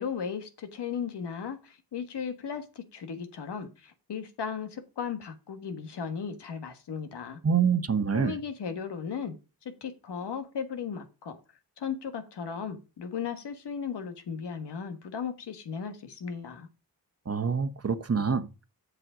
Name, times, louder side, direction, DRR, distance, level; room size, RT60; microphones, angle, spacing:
voice 1, 0.0-7.4 8.1-9.4 9.6-11.4 11.8-16.7, left 6 dB, 85° left, 1.6 m, -36 dB
voice 2, 7.4-8.4 17.3-18.6, right 6 dB, 40° right, 1.1 m, -26 dB
7.7 x 6.5 x 5.0 m
cardioid pair, 60°, 40 cm